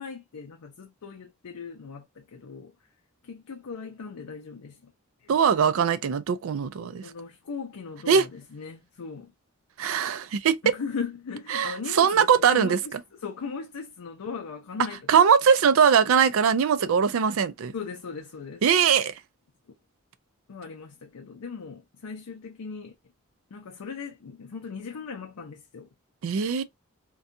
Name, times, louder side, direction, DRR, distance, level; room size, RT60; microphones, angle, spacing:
voice 1, 0.0-2.7 3.2-4.9 5.2-5.4 7.0-9.3 10.6-15.2 16.8-17.0 17.7-18.7 20.5-23.0 23.5-25.9, left 5 dB, 85° left, 0.5 m, -38 dB
voice 2, 5.3-7.0 8.1-8.3 9.8-10.5 11.5-12.8 15.1-17.7 18.6-19.1 26.2-26.6, right 7 dB, 65° right, 0.4 m, -21 dB
2.6 x 2.2 x 2.5 m
head